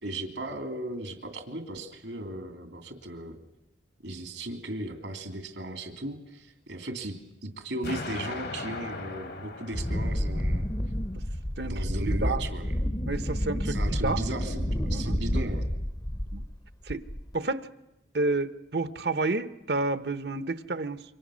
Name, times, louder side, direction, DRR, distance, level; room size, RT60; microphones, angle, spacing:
voice 1, 0.0-3.4 4.0-7.2 7.4-10.7 11.6-12.7 13.7-15.7, right 1 dB, 80° right, 6 dB, 2.8 m, -36 dB
Explosion, 7.8-10.8, left 3 dB, 60° left, 1.6 m, -38 dB
Wind, 9.7-16.6 16.9-17.3, equal, 20° left, 0.8 m, -30 dB
voice 2, 12.0-12.4 13.1-14.2 14.8-15.2 16.3-16.4 16.9-17.0 17.3-17.7 18.1-21.0, right 3 dB, 60° right, 12 dB, 1.0 m, -30 dB
28.0 x 24.5 x 6.4 m, 0.92 s
head